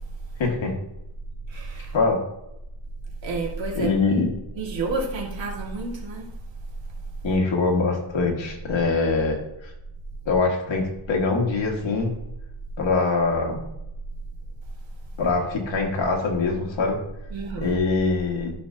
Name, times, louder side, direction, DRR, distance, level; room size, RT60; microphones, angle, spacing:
voice 1, 0.4-0.7 1.9-2.2 3.8-4.3 7.2-9.7 10.3-12.1 12.8-13.6 15.2-17.0 17.6-18.5, left 3 dB, 90° left, 0 dB, 1.9 m, -23 dB
voice 2, 1.5-1.9 3.2-3.9 4.6-6.3 17.3-17.7, right 3 dB, 85° right, -2 dB, 2.1 m, -29 dB
12.0 x 6.3 x 2.8 m, 0.85 s
wide cardioid pair, 125°, 44 cm